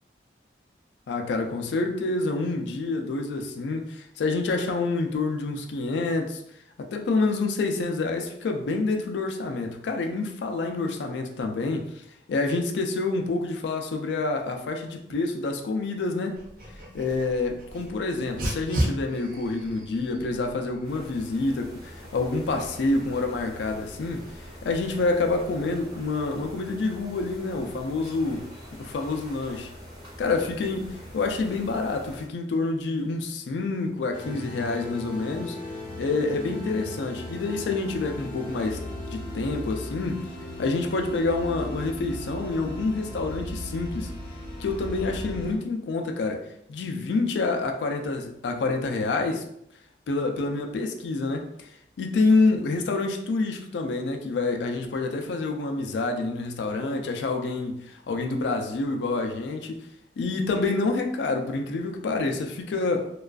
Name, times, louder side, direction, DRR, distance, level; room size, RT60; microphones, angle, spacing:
voice 1, 1.1-6.4 6.8-16.4 16.9-24.3 24.6-28.5 28.8-29.7 30.2-35.6 36.0-38.8 39.1-40.3 40.6-44.1 44.6-49.4 50.1-51.7 52.0-59.8 60.2-63.1, left 3 dB, 80° left, 4 dB, 0.3 m, -27 dB
Dog, 16.3-25.4, right 1 dB, 50° right, 0.5 m, -37 dB
sound 1, 20.8-32.3, equal, 20° right, 0.8 m, -44 dB
sound 2, 34.1-45.6, left 1 dB, 25° left, 0.6 m, -37 dB
2.3 x 2.3 x 2.3 m, 0.75 s
head